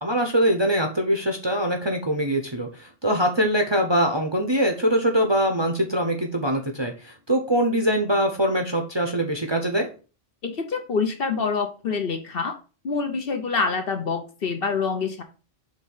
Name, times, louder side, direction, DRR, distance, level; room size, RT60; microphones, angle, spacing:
voice 1, 0.0-9.9, equal, 25° right, 3 dB, 0.7 m, -23 dB
voice 2, 10.4-12.6 12.8-15.2, left 5 dB, 50° left, 5 dB, 0.9 m, -26 dB
5.3 x 3.7 x 5.3 m, 0.35 s
omnidirectional pair, 1.3 m